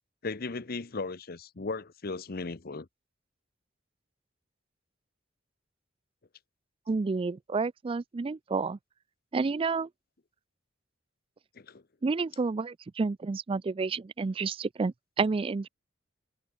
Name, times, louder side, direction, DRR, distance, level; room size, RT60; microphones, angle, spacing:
voice 1, 0.2-2.9 11.6-11.8, left 3 dB, 50° left, 0.9 m, -36 dB
voice 2, 6.9-8.8 9.3-9.9 12.0-15.7, right 4 dB, 30° right, 0.3 m, -30 dB
head